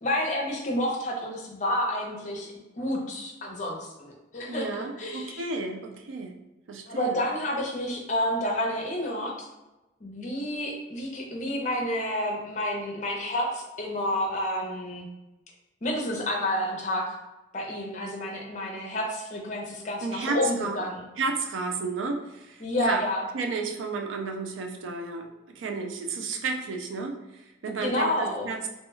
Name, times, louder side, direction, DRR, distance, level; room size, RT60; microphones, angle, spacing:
voice 1, 0.0-4.7 5.0-5.4 6.9-9.5 10.0-15.1 15.8-17.1 17.5-21.1 22.6-23.2 27.8-28.5, left 1 dB, 40° left, 0 dB, 0.6 m, -29 dB
voice 2, 4.5-6.3 6.7-7.2 20.0-20.8 21.2-23.0 23.3-28.7, right 4 dB, 85° right, 4 dB, 0.4 m, -32 dB
3.0 x 2.2 x 3.1 m, 1.0 s
head